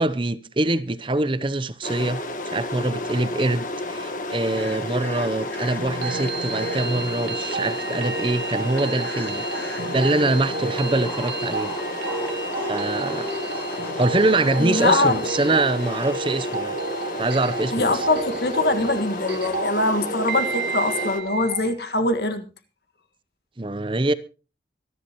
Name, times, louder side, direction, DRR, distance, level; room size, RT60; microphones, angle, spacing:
voice 1, 0.0-2.2 2.5-11.8 12.6-13.3 14.0-16.8 17.2-18.1 23.6-24.1, right 2 dB, 30° right, 0.7 m, -24 dB
sound 1, 1.8-21.2, left 2 dB, 45° left, 1.4 m, -31 dB
sound 2, 4.6-7.1 8.7-16.1, left 1 dB, 10° left, 2.3 m, -41 dB
sound 3, 5.8-21.7, right 4 dB, 65° right, 1.4 m, -32 dB
voice 2, 14.6-15.5 17.7-22.4, left 2 dB, 65° left, 1.8 m, -23 dB
24.5 x 11.0 x 3.0 m
head